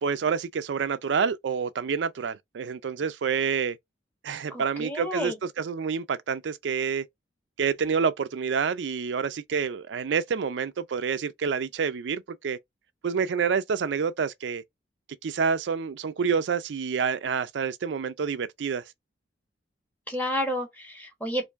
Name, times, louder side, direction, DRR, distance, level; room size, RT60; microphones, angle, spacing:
voice 1, 0.0-3.8 4.2-7.1 7.6-12.6 13.0-14.6 15.2-18.8, right 6 dB, 80° right, 0.4 m, -28 dB
voice 2, 4.5-5.4 20.1-21.4, equal, 10° left, 1.5 m, -30 dB
4.4 x 2.6 x 2.5 m
head